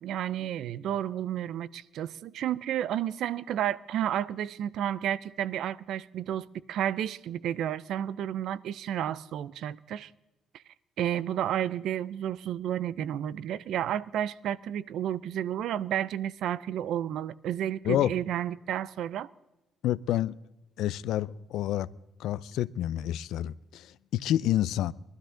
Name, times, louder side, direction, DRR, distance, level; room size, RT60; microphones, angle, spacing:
voice 1, 0.0-10.1 11.0-19.3, right 11 dB, 65° right, 0.4 m, -31 dB
voice 2, 19.8-20.4 20.8-21.9 22.2-24.9, left 12 dB, 75° left, 0.4 m, -28 dB
21.5 x 12.5 x 3.8 m
cardioid pair, 175°, 0 cm